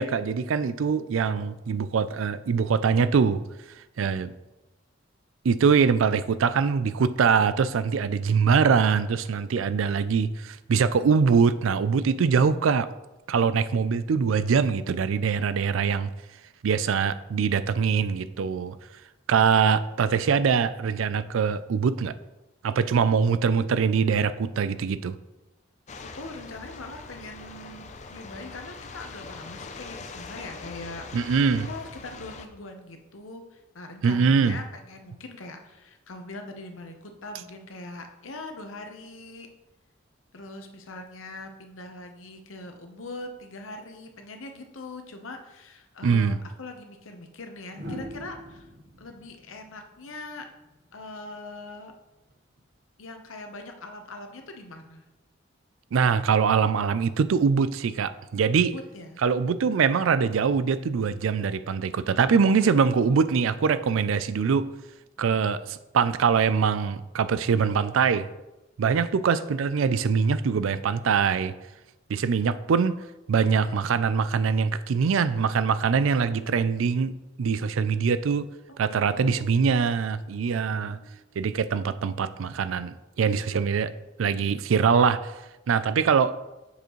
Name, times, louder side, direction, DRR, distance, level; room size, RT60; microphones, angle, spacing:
voice 1, 0.0-3.4 4.0-4.3 5.4-12.9 13.3-16.1 16.6-18.8 19.3-22.1 22.6-25.1 31.1-31.7 34.0-34.6 46.0-46.4 55.9-58.7 59.2-64.7 65.2-68.3 68.8-71.5 72.1-73.0 73.3-77.1 77.4-78.5 78.8-81.0 81.4-83.9 84.2-85.3 85.7-86.3, right 6 dB, 85° right, 14 dB, 0.4 m, -23 dB
sound 1, 25.9-32.5, left 4 dB, 35° left, 0.5 m, -42 dB
voice 2, 26.0-31.3 31.7-39.5 40.3-48.7 49.0-50.5 50.9-51.9 53.0-55.0 58.7-59.2 65.2-65.5 78.9-79.5 80.6-81.3, left 2 dB, 90° left, 5 dB, 0.9 m, -42 dB
sound 2, 47.7-50.7 52.3-52.6, equal, 55° right, 1.2 m, -42 dB
7.8 x 6.7 x 3.1 m, 1.0 s
head